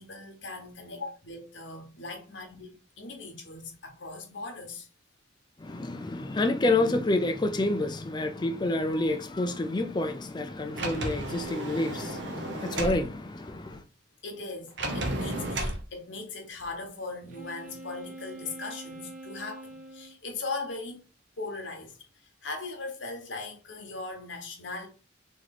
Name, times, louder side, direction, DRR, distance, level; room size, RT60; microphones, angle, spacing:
voice 1, 0.0-4.9 14.2-21.0 21.4-24.9, left 3 dB, 70° left, 1.0 m, -39 dB
voice 2, 5.6-13.8, left 2 dB, 20° left, 0.4 m, -28 dB
Sliding door, 10.7-13.0 14.8-15.8, right 1 dB, 65° right, 0.8 m, -33 dB
Wind instrument woodwind instrument, 17.3-20.2, right 2 dB, 40° right, 0.5 m, -44 dB
3.0 x 3.0 x 4.0 m
head